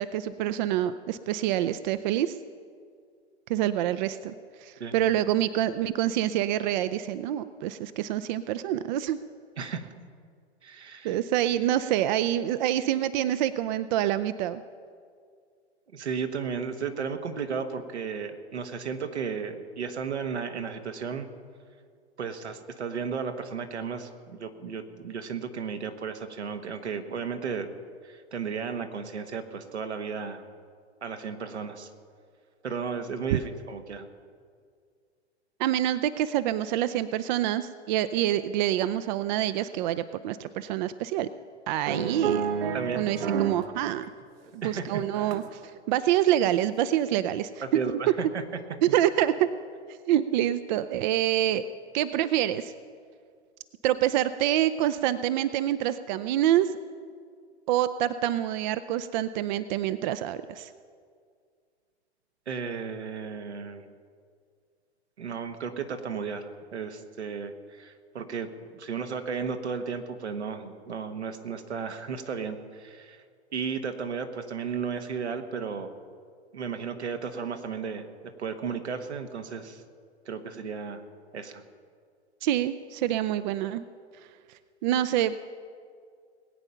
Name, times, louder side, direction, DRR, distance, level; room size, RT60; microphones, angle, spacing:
voice 1, 0.0-2.4 3.5-4.3 4.6-9.2 11.0-14.6 33.3-33.4 35.6-41.3 41.7-42.5 42.9-44.0 44.6-45.6 45.9-47.6 48.8-49.5 50.1-51.6 51.9-52.7 53.8-56.7 57.7-60.7 82.4-83.8 84.8-85.3, right 12 dB, 45° right, 13 dB, 0.5 m, -26 dB
voice 2, 9.6-9.9 10.6-11.2 15.9-21.3 22.2-27.7 28.0-30.4 31.0-31.9 32.6-34.1 42.7-43.0 44.6-45.1 47.6-48.4 48.9-49.0 62.5-63.9 65.2-68.5 68.8-73.2 73.5-75.9 76.5-78.1 78.4-79.8 80.2-81.0 81.3-81.6, right 6 dB, 80° right, 6 dB, 1.5 m, -34 dB
sound 1, 41.9-43.7 44.0-45.6 46.1-46.3, right 7 dB, 60° right, 1.2 m, -30 dB
20.5 x 8.9 x 5.6 m, 2.1 s
figure-of-eight pair, 105°, 33 cm